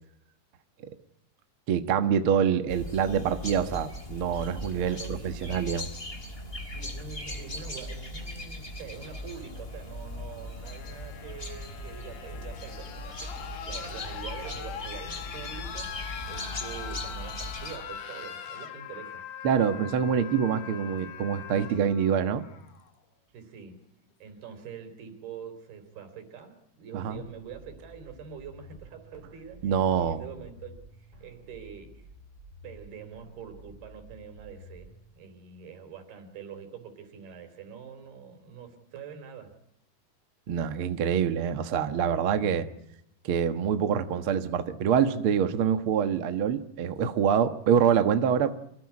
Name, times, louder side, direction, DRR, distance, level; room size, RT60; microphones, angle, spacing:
voice 1, 1.7-5.9 19.4-22.4 26.9-27.2 29.6-30.2 40.5-42.7 43.2-48.5, right 7 dB, 60° right, 8 dB, 1.4 m, -25 dB
sound 1, 2.7-17.8, left 1 dB, 15° left, 3.4 m, -39 dB
voice 2, 4.7-5.7 6.7-15.9 16.3-19.2 23.3-23.8 24.2-32.1 32.6-39.6, right 7 dB, 80° right, 8 dB, 5.7 m, -45 dB
sound 2, 8.9-22.9 24.1-24.2, left 8 dB, 85° left, 4.0 m, -42 dB
sound 3, 27.1-35.1, equal, 25° right, 5.4 m, -51 dB
26.0 x 18.0 x 9.8 m, 0.77 s
omnidirectional pair, 4.4 m